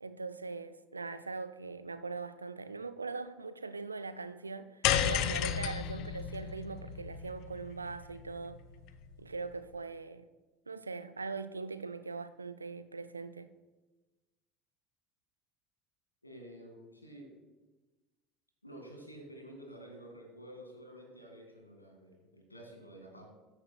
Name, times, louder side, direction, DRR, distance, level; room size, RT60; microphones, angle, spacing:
voice 1, 0.0-8.6 9.2-10.3 10.7-13.5, right 4 dB, 85° right, 0.4 m, -41 dB
sound 1, 4.8-9.2, left 10 dB, 55° left, 0.5 m, -33 dB
voice 2, 16.2-17.4 18.6-23.3, right 1 dB, 90° left, 2.0 m, -50 dB
14.0 x 9.8 x 2.3 m
figure-of-eight pair, 70°, 0 cm